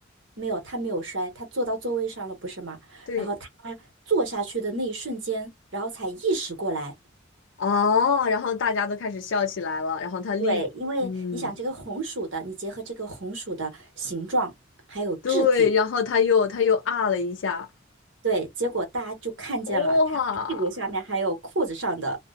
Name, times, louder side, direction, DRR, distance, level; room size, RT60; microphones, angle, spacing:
voice 1, 0.4-3.3 3.6-3.8 4.1-6.9 10.4-14.5 14.9-15.7 18.2-20.0 20.5-22.2, right 2 dB, 70° right, 1.1 m, -29 dB
voice 2, 7.6-10.6 11.0-11.5 15.2-17.7 19.7-20.6, left 5 dB, 70° left, 0.4 m, -24 dB
2.5 x 2.1 x 2.4 m
head